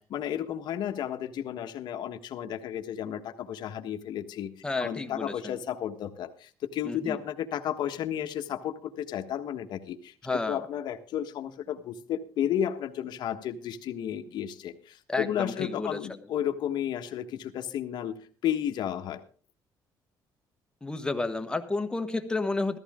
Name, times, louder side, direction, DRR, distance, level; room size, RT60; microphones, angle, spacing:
voice 1, 0.0-4.5 4.8-10.1 10.5-19.2, left 10 dB, 65° left, 6 dB, 1.4 m, -33 dB
voice 2, 4.6-5.6 6.8-7.2 10.2-10.7 15.1-16.0 20.8-22.8, left 3 dB, 10° left, 7 dB, 1.3 m, -31 dB
15.0 x 14.5 x 3.7 m, 0.40 s
cardioid pair, 135°, 8 cm